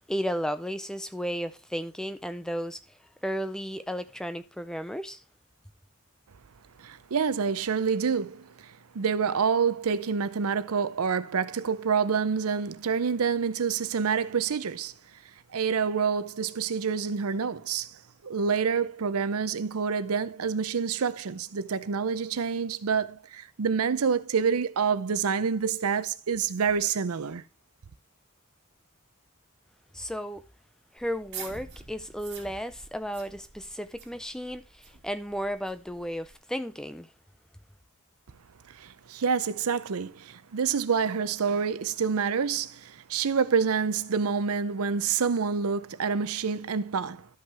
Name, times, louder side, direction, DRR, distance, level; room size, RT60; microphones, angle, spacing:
voice 1, 0.1-2.8 3.2-5.2 29.9-30.4 30.9-37.1, equal, 5° left, 0.3 m, -34 dB
voice 2, 6.8-14.9 15.5-18.0 18.2-27.4 38.7-47.3, right 6 dB, 85° right, 0.6 m, -27 dB
sound 1, 31.0-36.4, right 5 dB, 50° right, 2.3 m, -46 dB
12.0 x 5.6 x 3.4 m
head